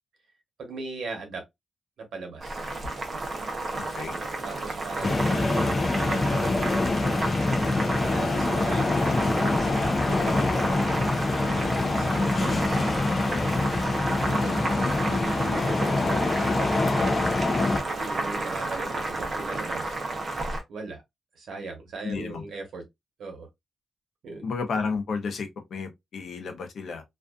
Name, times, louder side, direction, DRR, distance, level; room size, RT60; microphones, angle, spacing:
voice 1, 0.6-1.4 2.0-2.6 4.4-5.7 5.9-7.0 8.0-13.1 14.3-16.8 18.0-20.0 20.7-21.0 21.3-22.8 23.2-23.5 24.2-24.5, right 3 dB, 75° right, 1.0 m, -39 dB
Boiling, 2.4-20.6, right 2 dB, 35° right, 0.7 m, -31 dB
voice 2, 3.8-4.1 14.1-14.4 22.0-22.4 24.4-27.0, left 5 dB, 65° left, 0.6 m, -32 dB
sound 1, 5.0-17.8, left 3 dB, 25° left, 0.4 m, -25 dB
2.5 x 2.3 x 2.3 m
wide cardioid pair, 150°, 0 cm